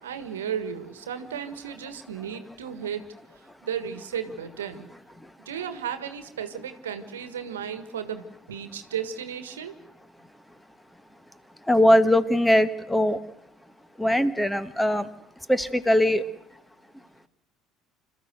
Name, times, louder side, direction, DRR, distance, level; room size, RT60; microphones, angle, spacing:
voice 1, 0.0-3.0 3.6-4.9 5.4-9.7, right 8 dB, 80° right, 10 dB, 1.5 m, -34 dB
voice 2, 11.7-13.2 14.0-15.1 15.5-16.2, left 1 dB, 5° left, 13 dB, 1.4 m, -20 dB
27.5 x 13.5 x 7.9 m, 0.83 s
hypercardioid pair, 65°, 0 cm